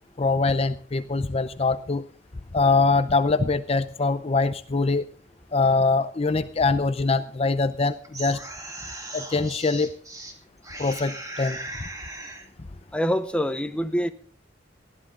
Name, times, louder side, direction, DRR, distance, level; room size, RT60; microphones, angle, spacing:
voice 1, 0.2-2.0 2.5-5.0 5.5-8.4 9.1-9.9 10.8-11.6, left 3 dB, 35° left, 0.6 m, -23 dB
sound 1, 7.8-10.3 10.6-12.5, right 1 dB, 20° right, 2.5 m, -38 dB
voice 2, 12.9-14.1, equal, 5° left, 0.8 m, -25 dB
19.0 x 13.0 x 3.7 m
head